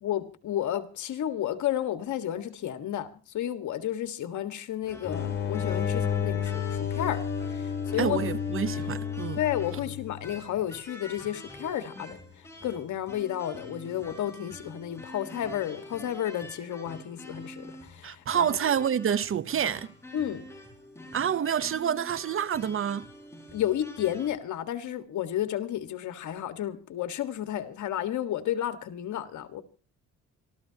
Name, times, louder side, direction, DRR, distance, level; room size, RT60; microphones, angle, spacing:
voice 1, 0.0-8.2 9.4-18.6 20.1-20.5 23.5-29.6, left 11 dB, 75° left, 1.6 m, -32 dB
sound 1, 4.8-24.3, left 1 dB, 10° left, 6.1 m, -46 dB
sound 2, 5.0-10.4, left 7 dB, 40° left, 3.9 m, -31 dB
voice 2, 8.0-9.4 18.0-19.9 21.1-23.1, right 8 dB, 45° right, 0.8 m, -28 dB
27.0 x 13.5 x 2.8 m
cardioid pair, 90°, 30 cm